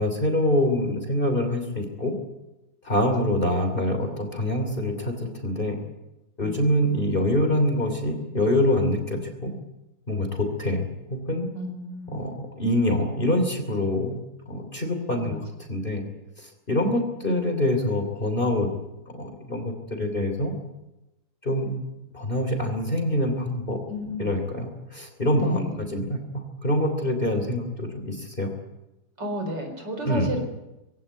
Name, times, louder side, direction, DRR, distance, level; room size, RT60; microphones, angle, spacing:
voice 1, 0.0-2.1 2.8-5.8 6.4-9.6 10.1-10.8 11.1-11.5 12.1-14.2 14.5-15.4 15.7-16.0 16.4-18.7 19.1-20.5 21.4-21.8 22.1-23.8 24.2-28.5 30.0-30.3, left 1 dB, 25° left, 5 dB, 3.2 m, -25 dB
voice 2, 11.5-12.2 15.2-15.4 23.9-24.3 25.4-25.9 29.2-30.4, equal, 60° right, 4 dB, 5.0 m, -33 dB
21.5 x 17.0 x 9.5 m, 0.97 s
omnidirectional pair, 2.2 m